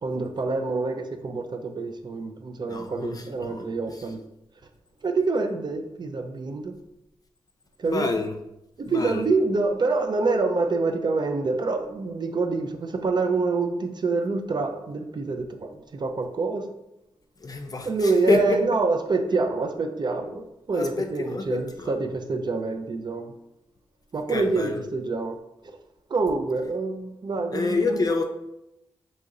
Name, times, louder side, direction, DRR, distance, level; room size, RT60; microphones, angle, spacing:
voice 1, 0.0-4.2 5.0-6.8 7.8-8.2 8.8-16.6 17.9-23.3 24.1-25.4 26.1-28.0, right 3 dB, 50° right, 6 dB, 0.4 m, -26 dB
voice 2, 2.7-3.6 3.9-4.1 7.8-8.3 8.9-9.3 17.4-18.6 20.7-21.9 24.3-24.8 27.5-28.2, left 3 dB, 40° left, 5 dB, 0.5 m, -27 dB
2.9 x 2.7 x 3.7 m, 0.88 s
cardioid pair, 50°, 10 cm